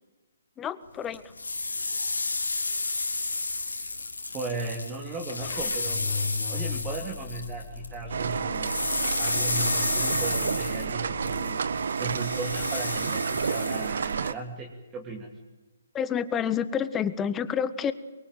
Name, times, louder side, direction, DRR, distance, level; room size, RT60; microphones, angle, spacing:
voice 1, 0.6-1.2 15.9-17.9, left 8 dB, 15° left, 14 dB, 1.4 m, -28 dB
sound 1, 1.1-7.9 8.2-14.3, left 3 dB, 85° left, 3.2 m, -31 dB
voice 2, 4.3-6.1 6.5-8.7 9.2-11.6 12.0-15.3, right 3 dB, 20° right, 1 dB, 2.9 m, -36 dB
sound 2, 5.4-11.4, left 5 dB, 35° left, 4.7 m, -38 dB
sound 3, 8.1-14.3, right 6 dB, 65° right, 1.1 m, -30 dB
24.5 x 23.5 x 9.1 m, 1.1 s
figure-of-eight pair, 135°, 0 cm